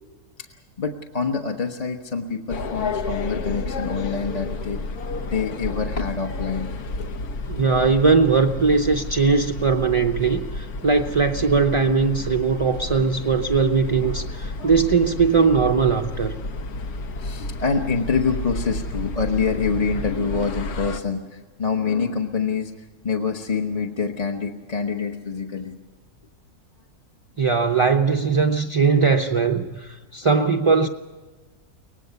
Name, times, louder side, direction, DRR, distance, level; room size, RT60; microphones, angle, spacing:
voice 1, 0.8-4.8 5.3-7.2 14.6-14.8 17.1-22.7 23.0-25.7 29.0-29.1, left 5 dB, 30° left, 2 dB, 1.0 m, -26 dB
sound 1, 2.5-21.0, left 3 dB, 85° left, 1.5 m, -31 dB
voice 2, 7.5-16.3 27.4-30.9, right 5 dB, 35° right, 5 dB, 0.5 m, -20 dB
24.0 x 18.5 x 6.9 m, 1.3 s
omnidirectional pair, 1.6 m